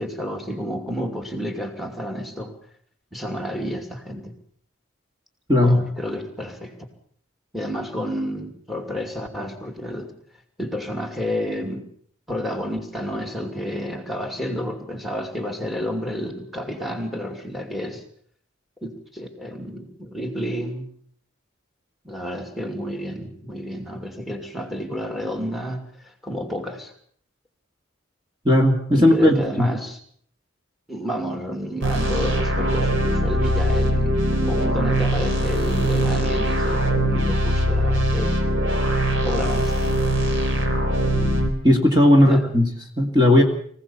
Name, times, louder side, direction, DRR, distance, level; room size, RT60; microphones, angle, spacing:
voice 1, 0.0-2.5 3.1-4.3 5.6-6.8 7.5-10.1 10.6-11.9 12.3-18.0 18.8-20.9 22.0-26.9 28.9-30.0 30.9-38.3 39.2-39.9 42.1-42.4, equal, ahead, 4 dB, 2.6 m, -30 dB
voice 2, 5.5-5.8 28.4-29.7 41.6-42.7 43.0-43.4, left 1 dB, 20° right, 1 dB, 2.4 m, -16 dB
sound 1, 31.8-41.5, equal, 65° right, 4.2 m, -21 dB
24.5 x 16.5 x 7.2 m, 0.62 s
head